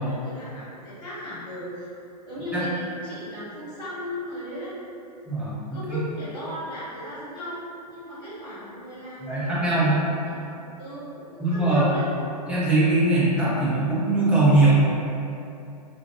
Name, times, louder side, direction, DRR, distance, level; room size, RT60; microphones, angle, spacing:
voice 1, 0.0-1.9 2.3-4.7 5.7-10.5 10.8-12.1, equal, 25° left, -13 dB, 1.1 m, -36 dB
voice 2, 5.3-6.0 9.2-10.0 11.4-11.9 12.5-14.7, right 2 dB, 5° right, -10 dB, 0.5 m, -21 dB
2.5 x 2.0 x 2.5 m, 2.7 s
hypercardioid pair, 120°, 21 cm